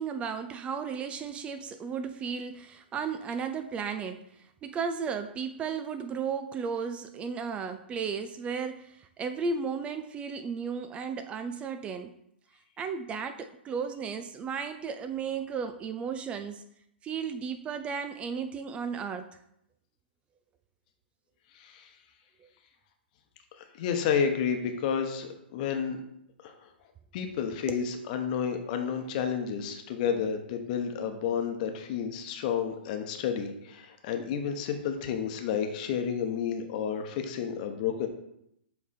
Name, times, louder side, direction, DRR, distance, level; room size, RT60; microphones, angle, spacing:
voice 1, 0.0-12.1 12.8-16.6 17.0-19.3 22.4-22.5 27.7-27.8, right 6 dB, 20° right, 9 dB, 0.3 m, -34 dB
voice 2, 23.8-26.0 26.4-26.5 27.1-38.1, left 7 dB, 45° left, 6 dB, 1.0 m, -31 dB
7.6 x 3.4 x 4.3 m, 0.77 s
hypercardioid pair, 125°, 6 cm